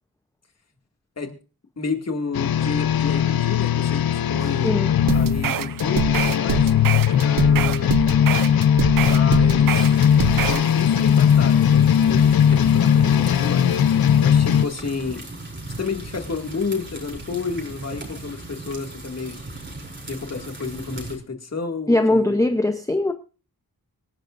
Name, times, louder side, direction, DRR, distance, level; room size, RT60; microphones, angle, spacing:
voice 1, 1.8-4.7 5.1-7.9 9.0-9.9 10.3-14.0 14.2-15.3 15.8-19.4 20.1-22.4, left 4 dB, 45° left, 4 dB, 2.2 m, -31 dB
sound 1, 2.3-14.7, left 9 dB, 75° left, 0.7 m, -18 dB
sound 2, 5.1-10.7, right 9 dB, 65° right, 0.6 m, -26 dB
sound 3, 9.8-21.2, right 2 dB, 30° right, 4.9 m, -37 dB
voice 2, 21.9-23.1, left 2 dB, 10° left, 7 dB, 0.7 m, -20 dB
25.0 x 11.0 x 2.6 m, 0.34 s
wide cardioid pair, 140°, 37 cm